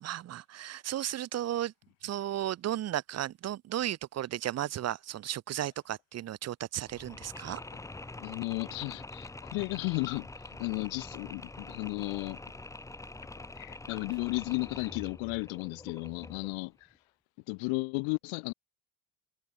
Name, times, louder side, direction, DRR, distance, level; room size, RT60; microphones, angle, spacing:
voice 1, 0.0-1.7 2.0-7.6, right 12 dB, 35° right, 0.6 m, -34 dB
Mechanisms, 6.9-16.6, left 2 dB, 5° left, 0.6 m, -45 dB
voice 2, 8.2-10.3 10.6-12.4 13.5-16.7 17.5-18.5, left 32 dB, 85° left, 0.8 m, -34 dB
cardioid pair, 105°, 45 cm